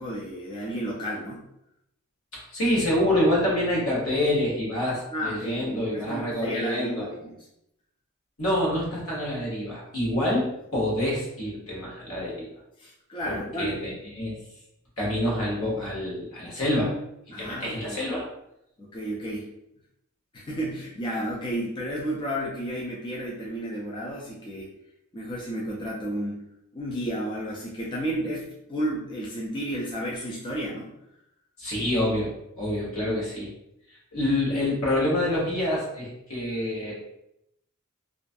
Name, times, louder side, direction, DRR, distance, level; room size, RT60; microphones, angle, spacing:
voice 1, 0.0-1.5 5.1-7.4 10.2-10.3 12.8-13.9 17.3-18.0 18.8-19.5 20.3-24.7 25.1-26.4 26.7-31.0, right 1 dB, 20° left, -4 dB, 0.3 m, -32 dB
voice 2, 2.3-7.0 8.4-12.5 13.2-14.3 15.0-17.0 17.4-18.3 31.6-32.3 32.6-33.5 34.1-36.9, left 1 dB, 75° left, -4 dB, 1.1 m, -27 dB
2.4 x 2.3 x 2.5 m, 0.81 s
head